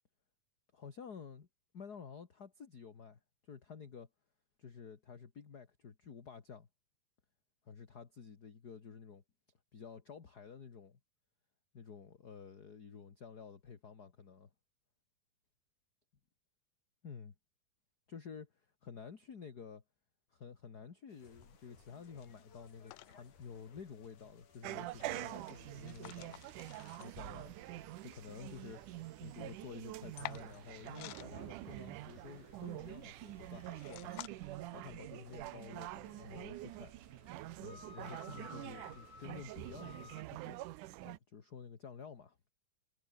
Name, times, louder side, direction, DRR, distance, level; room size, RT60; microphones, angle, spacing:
voice 1, 0.7-1.5 1.7-4.1 4.6-6.7 7.6-9.2 9.7-11.0 11.7-14.5 17.0-17.3 18.1-19.8 20.3-26.4 27.0-27.5 28.0-28.8 29.2-36.9 37.6-40.8 41.0-42.4, left 6 dB, 35° left, 1.8 m, -51 dB
sound 1, 21.1-34.3, left 21 dB, 90° left, 2.3 m, -55 dB
sound 2, 21.2-40.2, left 5 dB, 60° left, 6.3 m, -61 dB
sound 3, 24.6-41.2, right 17 dB, 75° right, 2.1 m, -46 dB
omnidirectional pair, 4.0 m